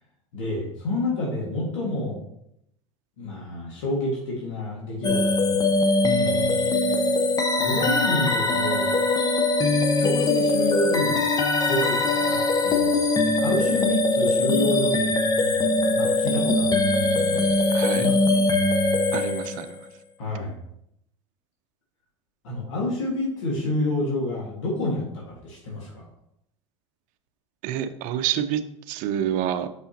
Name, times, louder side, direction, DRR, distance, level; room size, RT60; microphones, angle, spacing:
voice 1, 0.3-2.2 3.2-5.6 6.2-6.6 7.6-8.9 10.0-11.2 11.6-12.0 12.3-13.0 13.4-17.4 17.9-18.5 20.2-20.5 22.4-26.0, left 2 dB, 75° left, -3 dB, 1.8 m, -29 dB
sound 1, 5.0-19.8, left 2 dB, 25° left, 0.9 m, -22 dB
voice 2, 17.7-18.1 19.1-19.8 27.6-28.6 28.9-29.7, right 10 dB, 55° right, 11 dB, 0.6 m, -27 dB
6.2 x 5.5 x 2.9 m, 0.77 s
hypercardioid pair, 90°, 16 cm